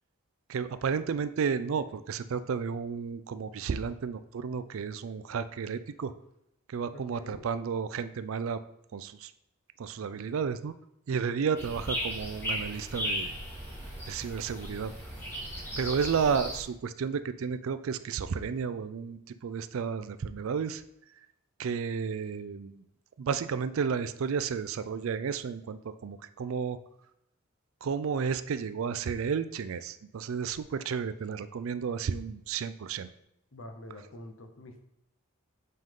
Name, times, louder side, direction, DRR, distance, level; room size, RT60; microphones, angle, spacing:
voice 1, 0.5-6.1 6.7-8.6 8.9-9.3 9.8-10.7 11.1-13.3 14.1-14.9 15.8-20.8 21.6-22.8 23.2-26.8 27.8-33.1, right 6 dB, 70° right, 13 dB, 0.4 m, -32 dB
voice 2, 6.9-7.5 11.4-11.7 33.5-34.8, left 1 dB, 65° left, 5 dB, 0.9 m, -46 dB
sound 1, 11.6-16.6, equal, 10° left, 1.6 m, -36 dB
7.6 x 3.8 x 3.7 m, 0.81 s
head